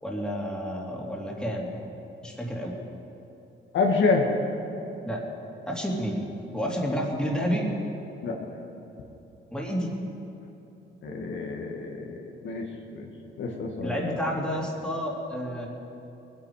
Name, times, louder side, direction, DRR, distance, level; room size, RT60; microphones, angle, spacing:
voice 1, 0.0-1.8 2.2-2.8 5.0-5.2 5.6-7.7 9.5-9.9 13.8-15.7, equal, 5° left, -3 dB, 2.8 m, -30 dB
voice 2, 3.7-4.3 8.2-8.4 11.0-12.6 12.9-13.1 13.4-13.9, left 4 dB, 70° left, 1 dB, 1.8 m, -27 dB
20.0 x 9.1 x 4.9 m, 3.0 s
cardioid pair, 90°, 20 cm